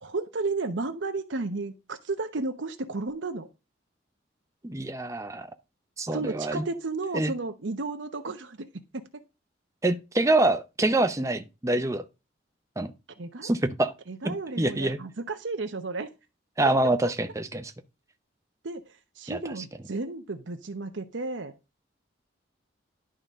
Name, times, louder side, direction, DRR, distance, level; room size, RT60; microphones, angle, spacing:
voice 1, 0.0-3.5 6.1-8.7 8.9-9.1 13.2-13.5 14.1-16.1 18.6-18.8 19.2-21.5, right 3 dB, 85° right, 0.8 m, -33 dB
voice 2, 4.6-5.5 6.0-6.6 7.1-7.3 9.8-12.0 12.8-12.9 13.4-13.9 14.2-15.0 16.6-17.7 19.3-19.6, right 2 dB, 15° right, 0.6 m, -26 dB
11.0 x 3.8 x 5.4 m
head